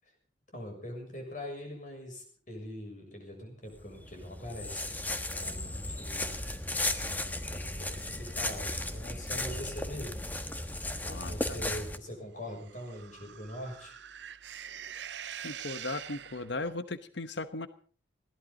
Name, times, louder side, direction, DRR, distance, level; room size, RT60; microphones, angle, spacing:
voice 1, 0.5-4.9 5.3-6.4 7.0-10.4 11.2-13.9, equal, 40° left, 3 dB, 6.8 m, -43 dB
sound 1, 3.7-12.0, left 1 dB, 10° left, 1.2 m, -35 dB
voice 2, 11.0-11.6 15.4-17.7, left 2 dB, 70° left, 12 dB, 1.1 m, -37 dB
sound 2, 12.4-16.7, right 9 dB, 70° right, 0.7 m, -44 dB
21.0 x 17.0 x 3.9 m, 0.42 s
head